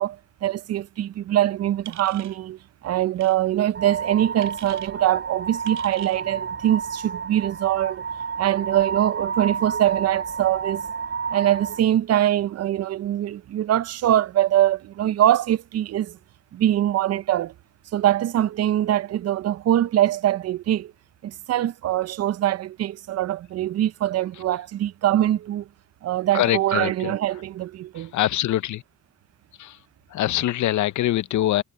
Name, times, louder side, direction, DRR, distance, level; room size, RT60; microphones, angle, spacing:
voice 1, 0.0-8.0 8.4-10.9 11.3-16.2 16.5-17.5 17.9-20.9 21.2-25.7 26.0-28.1, right 12 dB, 55° right, 0.6 m, -23 dB
sound 1, 1.8-2.4 3.2-3.4 4.4-4.9 5.6-6.2, right 13 dB, 80° right, 4.4 m, -43 dB
sound 2, 3.7-11.8, right 5 dB, 40° right, 4.6 m, -31 dB
voice 2, 26.3-27.2 27.9-28.8 29.6-29.8 30.1-31.6, left 13 dB, 70° left, 0.8 m, -24 dB
cardioid pair, 90°, 30 cm